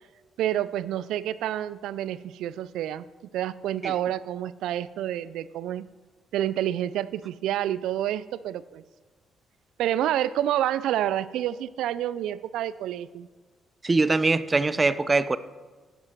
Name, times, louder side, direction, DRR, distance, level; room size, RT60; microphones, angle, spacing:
voice 1, 0.4-3.1 3.3-5.9 6.3-8.8 9.8-13.3, right 12 dB, 85° right, 0.3 m, -28 dB
voice 2, 13.8-15.4, right 3 dB, 25° right, 0.5 m, -22 dB
10.0 x 7.5 x 4.5 m
cardioid pair, 90°, 0 cm